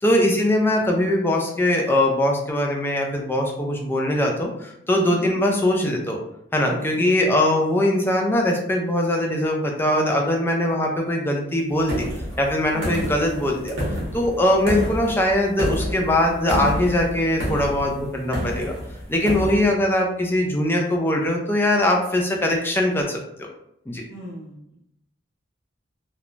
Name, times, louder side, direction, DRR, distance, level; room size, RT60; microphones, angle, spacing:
voice 1, 0.0-6.2 6.5-12.1 12.4-13.8 14.1-18.7 19.1-23.5 23.9-24.0, left 1 dB, 10° left, 1 dB, 0.3 m, -21 dB
voice 2, 6.9-7.2 12.7-12.9 14.5-14.6 24.1-24.8, left 1 dB, 50° left, -2 dB, 0.6 m, -39 dB
sound 1, 11.9-19.7, equal, 65° right, 1.0 m, -29 dB
3.0 x 2.1 x 2.4 m, 0.77 s
head